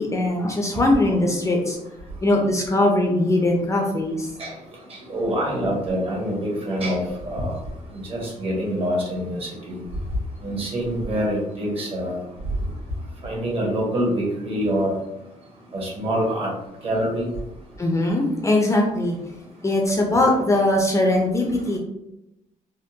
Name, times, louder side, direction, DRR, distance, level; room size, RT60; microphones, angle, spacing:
voice 1, 0.0-1.8 2.2-4.3 17.8-19.2 19.6-21.8, left 1 dB, 20° left, 0 dB, 0.5 m, -20 dB
voice 2, 4.9-7.5 7.9-9.8 10.4-12.2 13.2-14.9 15.7-16.5 16.8-17.2, equal, 45° right, -2 dB, 1.2 m, -25 dB
3.5 x 2.2 x 2.7 m, 0.88 s
cardioid pair, 125°, 14 cm